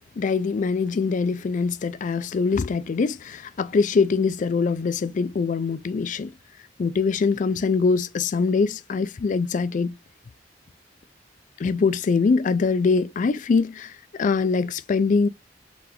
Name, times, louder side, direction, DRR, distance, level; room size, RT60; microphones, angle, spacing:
voice 1, 0.2-6.3 6.8-10.0 11.6-13.9 14.2-15.3, left 4 dB, 45° left, 0.4 m, -23 dB
3.9 x 3.8 x 2.9 m
head